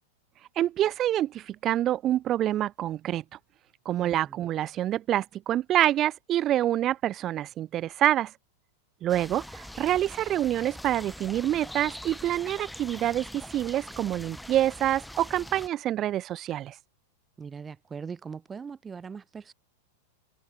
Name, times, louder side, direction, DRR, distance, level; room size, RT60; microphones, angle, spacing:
voice 1, 0.6-3.2 3.8-8.3 9.0-16.7, right 12 dB, 35° right, 1.2 m, -27 dB
voice 2, 4.0-4.4 17.4-19.5, right 6 dB, 15° right, 2.8 m, -41 dB
sound 1, 9.1-15.7, left 1 dB, ahead, 3.8 m, -43 dB
hypercardioid pair, 130°, 0 cm